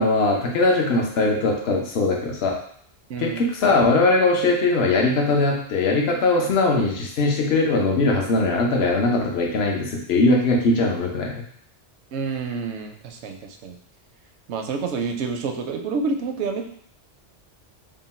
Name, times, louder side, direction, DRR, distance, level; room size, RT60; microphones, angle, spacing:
voice 1, 0.0-2.6 3.2-11.4, left 2 dB, 65° left, 0 dB, 1.0 m, -20 dB
voice 2, 3.1-3.4 12.1-13.8 14.5-16.7, right 4 dB, 75° right, 4 dB, 0.8 m, -28 dB
3.8 x 2.2 x 4.1 m, 0.62 s
omnidirectional pair, 1.2 m